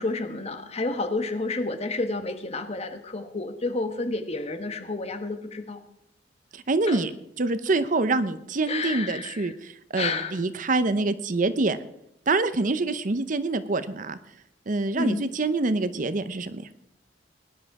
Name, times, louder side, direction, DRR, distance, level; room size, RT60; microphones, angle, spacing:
voice 1, 0.0-5.8 6.9-7.0 8.7-9.5 9.9-10.4 14.9-15.3, left 3 dB, 35° left, 8 dB, 1.2 m, -30 dB
voice 2, 6.5-7.1 7.4-11.8 12.3-14.2 14.7-16.7, right 3 dB, 45° right, 13 dB, 0.7 m, -26 dB
18.0 x 11.0 x 4.8 m, 0.77 s
head